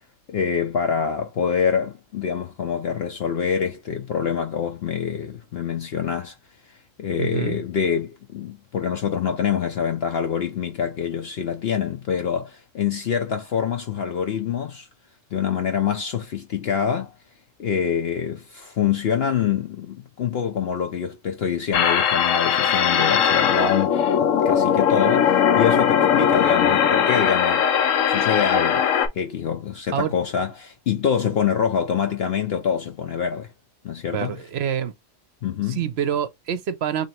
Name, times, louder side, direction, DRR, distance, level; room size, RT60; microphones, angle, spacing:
voice 1, 0.3-6.4 7.0-14.9 15.3-17.1 17.6-27.7 28.1-28.9 29.1-33.5 33.8-34.4 35.4-35.8, left 7 dB, 60° left, 0.8 m, -25 dB
voice 2, 7.2-7.6 29.9-30.1 34.1-34.9 35.7-37.1, right 9 dB, 60° right, 0.8 m, -26 dB
sound 1, 21.7-29.1, left 8 dB, 80° left, 1.1 m, -19 dB
2.9 x 2.8 x 4.2 m
omnidirectional pair, 1.3 m